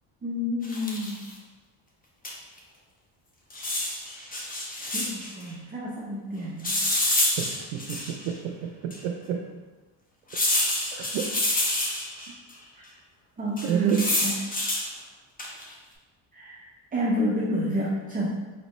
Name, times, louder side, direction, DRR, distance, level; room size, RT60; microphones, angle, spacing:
voice 1, 0.2-1.3 4.9-6.8 13.4-14.3 16.3-18.3, equal, 20° right, -4 dB, 0.5 m, -29 dB
sound 1, 0.6-1.2 2.2-2.3 2.6-2.7 3.5-5.3 6.6-8.3 8.9-9.0 10.3-12.3 13.6-14.9 15.4-15.7, left 1 dB, 15° left, 0.7 m, -27 dB
voice 2, 7.4-9.5 11.0-11.4 13.6-14.1, right 8 dB, 80° right, 3 dB, 0.6 m, -29 dB
4.7 x 3.1 x 3.0 m, 1.2 s
cardioid pair, 110°, 50 cm